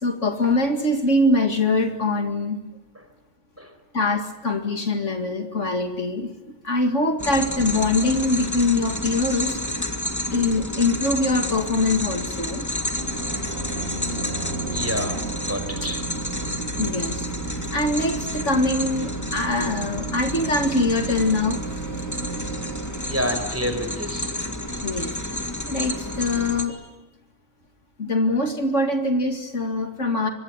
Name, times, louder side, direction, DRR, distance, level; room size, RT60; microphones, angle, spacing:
voice 1, 0.0-2.6 3.9-6.3 6.6-9.6 10.3-12.6 16.8-21.6 24.8-25.1 25.7-26.8 28.0-30.3, left 2 dB, 65° left, 5 dB, 2.5 m, -23 dB
sound 1, 7.2-26.6, left 1 dB, 15° left, 2.1 m, -30 dB
sound 2, 13.0-24.5, right 5 dB, 50° right, 1.9 m, -35 dB
voice 2, 14.7-16.0 23.0-24.3, equal, 10° right, 7 dB, 4.8 m, -29 dB
24.0 x 24.0 x 9.7 m, 0.99 s
omnidirectional pair, 1.4 m